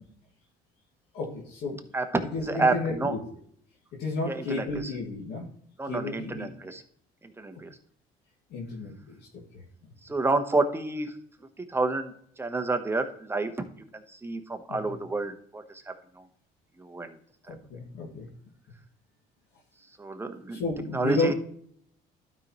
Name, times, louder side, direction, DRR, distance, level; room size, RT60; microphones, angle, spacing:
voice 1, 1.1-1.8 2.3-3.2 4.0-5.4 5.9-6.5 8.5-9.1 14.7-14.8 17.5-18.3 20.5-21.3, left 3 dB, 80° left, -4 dB, 2.2 m, -32 dB
voice 2, 1.9-3.2 4.3-4.9 5.8-6.8 7.2-7.7 10.0-11.2 11.7-12.1 12.4-13.7 13.9-15.8 16.2-16.3 16.8-17.2 17.5-17.6 20.0-20.6 20.9-21.3, right 3 dB, 15° right, 6 dB, 1.0 m, -29 dB
12.0 x 5.4 x 3.1 m, 0.63 s
cardioid pair, 110°, 17 cm